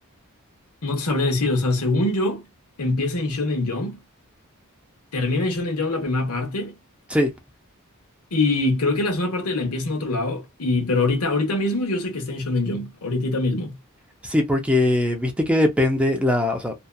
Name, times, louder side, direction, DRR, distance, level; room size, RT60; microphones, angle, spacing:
voice 1, 0.8-2.4 2.8-4.0 5.1-6.7 8.3-13.7, left 2 dB, 85° left, 1.0 m, -23 dB
voice 2, 14.2-16.7, left 1 dB, 5° right, 0.5 m, -20 dB
2.7 x 2.3 x 2.2 m
head